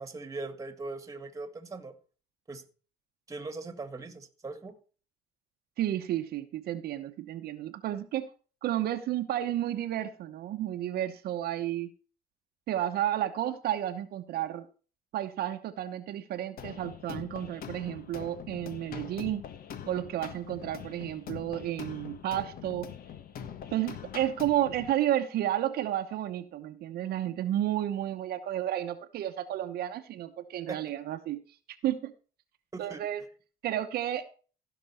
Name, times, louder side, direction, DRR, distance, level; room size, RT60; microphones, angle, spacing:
voice 1, 0.0-1.9 2.5-2.6 3.3-4.8 30.7-30.8 32.7-33.0, right 3 dB, 20° right, 1.7 m, -40 dB
voice 2, 5.8-8.3 8.6-11.9 12.7-14.7 15.1-19.4 19.9-22.9 23.7-31.4 31.8-32.1 32.8-33.2 33.6-34.2, right 12 dB, 70° right, 1.0 m, -32 dB
sound 1, 16.6-24.9, left 9 dB, 60° left, 1.3 m, -43 dB
15.5 x 6.0 x 4.3 m
cardioid pair, 110°, 17 cm